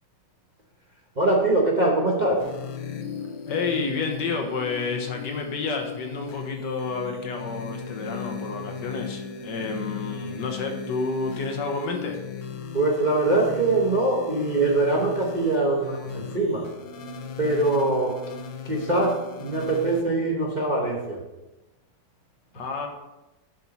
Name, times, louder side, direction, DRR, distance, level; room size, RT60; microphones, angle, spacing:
voice 1, 1.2-2.5 12.7-16.7 17.4-18.3 18.6-21.2, right 2 dB, 30° right, -2 dB, 0.9 m, -23 dB
sound 1, 2.4-20.0, left 6 dB, 80° left, 1.6 m, -37 dB
voice 2, 3.5-12.2 22.5-22.9, left 4 dB, 65° left, 3 dB, 1.6 m, -30 dB
10.5 x 5.3 x 4.2 m, 1.0 s
omnidirectional pair, 2.1 m